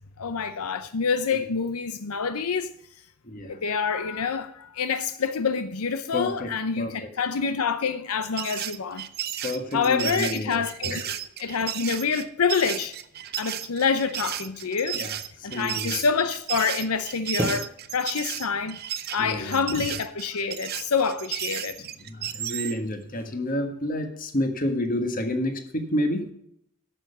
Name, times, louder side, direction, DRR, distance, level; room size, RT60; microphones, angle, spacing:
voice 1, 0.2-2.7 3.5-9.3 9.7-11.0 11.4-12.9 13.4-15.0 15.4-18.8 19.1-21.8, left 5 dB, 90° left, 0.7 m, -27 dB
voice 2, 3.3-3.6 6.1-6.5 6.8-7.1 9.4-11.2 14.9-15.1 15.4-16.0 19.2-19.6 22.0-26.3, left 1 dB, 40° left, 1.5 m, -29 dB
sound 1, 8.2-22.8, right 11 dB, 45° right, 0.6 m, -34 dB
sound 2, 17.4-18.6 20.2-20.5 20.8-21.9 22.2-23.7, equal, 10° right, 1.0 m, -37 dB
11.0 x 6.9 x 5.5 m
head